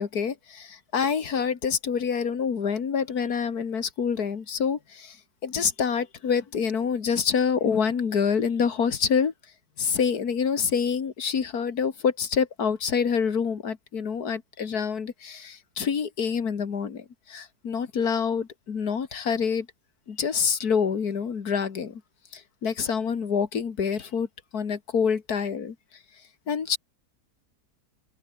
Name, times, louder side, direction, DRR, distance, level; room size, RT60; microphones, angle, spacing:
voice 1, 0.0-5.2 5.4-9.3 9.8-19.7 20.1-22.0 22.3-24.3 24.5-25.8 26.5-26.8, left 6 dB, 65° left, 2.3 m, -26 dB
omnidirectional pair, 1.8 m